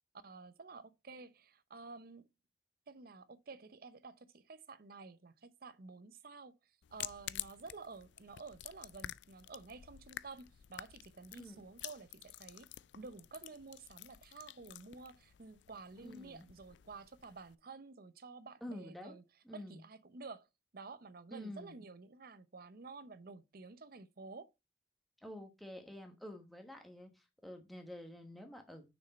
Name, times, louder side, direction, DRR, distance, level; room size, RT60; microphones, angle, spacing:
voice 1, 0.2-2.2 2.9-6.6 6.9-12.7 12.9-19.2 19.5-20.5 20.7-24.5, right 4 dB, 55° right, 0.7 m, -51 dB
sound 1, 6.8-17.5, left 13 dB, 75° left, 0.4 m, -50 dB
voice 2, 16.0-16.5 18.6-19.2 19.4-19.8 21.3-21.9 25.2-28.9, left 1 dB, ahead, 1.3 m, -49 dB
6.4 x 6.3 x 4.2 m
head